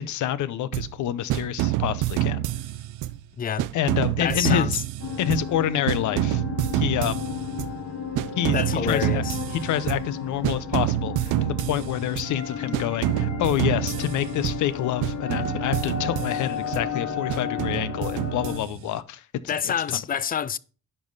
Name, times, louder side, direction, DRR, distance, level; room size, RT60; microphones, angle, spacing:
voice 1, 0.0-2.5 3.7-4.8 5.2-6.4 6.7-7.3 8.4-9.2 9.5-19.7, left 11 dB, 75° left, 0.7 m, -27 dB
sound 1, 0.7-1.0 1.3-3.3 3.6-5.6 5.9-7.8 8.2-10.2 10.4-12.4 12.7-14.7 15.0-16.9 17.3-19.0, right 15 dB, 85° right, 0.5 m, -28 dB
voice 2, 4.2-4.7 8.5-9.4 19.5-20.6, left 8 dB, 30° left, 0.4 m, -27 dB
sound 2, 5.0-18.6, left 7 dB, 50° left, 1.8 m, -33 dB
10.0 x 5.5 x 3.9 m
cardioid pair, 90°, 30 cm